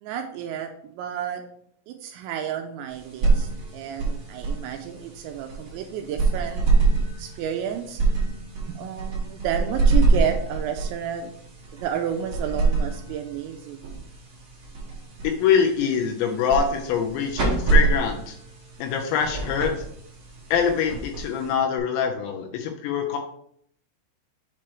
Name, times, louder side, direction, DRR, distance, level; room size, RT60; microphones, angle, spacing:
voice 1, 0.0-1.4 1.9-6.7 7.2-8.0 8.7-11.3 11.8-13.9, right 9 dB, 85° right, 5 dB, 2.7 m, -31 dB
sound 1, 2.9-21.8, right 3 dB, 65° right, 1.3 m, -26 dB
voice 2, 15.2-18.4 18.8-19.8 20.5-23.2, left 7 dB, 80° left, 3 dB, 2.8 m, -24 dB
7.4 x 3.0 x 4.6 m, 0.66 s
omnidirectional pair, 5.5 m